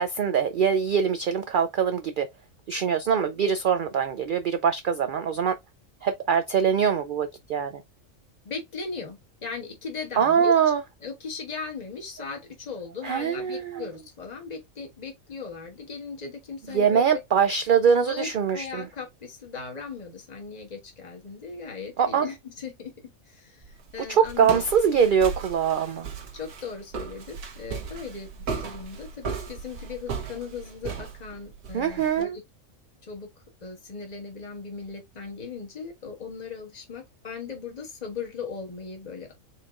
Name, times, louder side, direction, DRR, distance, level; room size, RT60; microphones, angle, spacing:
voice 1, 0.0-2.3 2.7-5.5 6.0-7.7 10.2-10.8 13.0-13.8 16.7-18.8 22.0-22.3 24.1-26.1 31.7-32.4, right 7 dB, 70° right, 0.5 m, -23 dB
voice 2, 8.4-10.5 11.0-17.2 18.1-24.6 26.3-32.4 33.0-33.3 33.6-39.3, left 5 dB, 30° left, 1.4 m, -38 dB
Walk footsteps, 23.6-32.2, right 5 dB, 90° right, 1.5 m, -37 dB
4.6 x 4.3 x 2.4 m
omnidirectional pair, 1.4 m